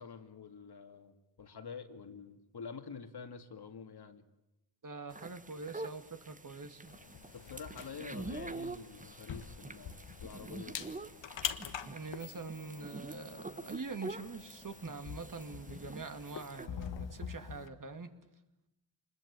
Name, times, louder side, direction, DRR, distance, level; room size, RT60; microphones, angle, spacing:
voice 1, 0.0-4.2 7.3-10.9, left 6 dB, 60° left, 7 dB, 2.2 m, -47 dB
voice 2, 4.8-6.8 11.8-18.1, right 4 dB, 45° right, 7 dB, 2.5 m, -44 dB
sound 1, 5.1-16.7, right 3 dB, 20° right, 1.1 m, -47 dB
sound 2, 6.9-17.7, left 8 dB, 85° left, 1.4 m, -45 dB
26.0 x 21.5 x 8.6 m, 0.92 s
cardioid pair, 65°, 43 cm